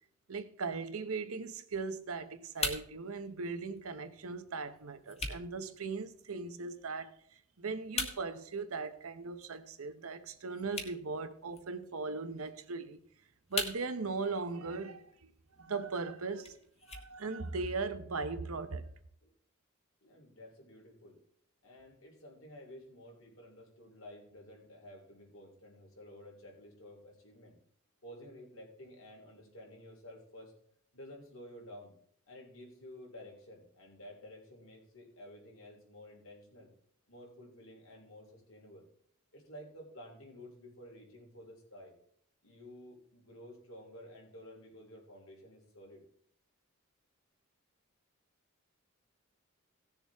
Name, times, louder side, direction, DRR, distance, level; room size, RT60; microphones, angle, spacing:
voice 1, 0.3-7.1 7.6-13.0 13.5-15.3 15.6-16.6 16.9-18.9, right 4 dB, 90° right, 0.9 m, -38 dB
sound 1, 1.7-17.7, left 4 dB, 30° left, 1.4 m, -45 dB
voice 2, 20.0-21.2 21.6-27.6 28.0-30.5 30.9-31.9 32.3-36.7 37.1-38.9 39.3-41.9 42.4-46.0, left 1 dB, 70° left, 3.3 m, -52 dB
17.5 x 6.9 x 3.5 m
head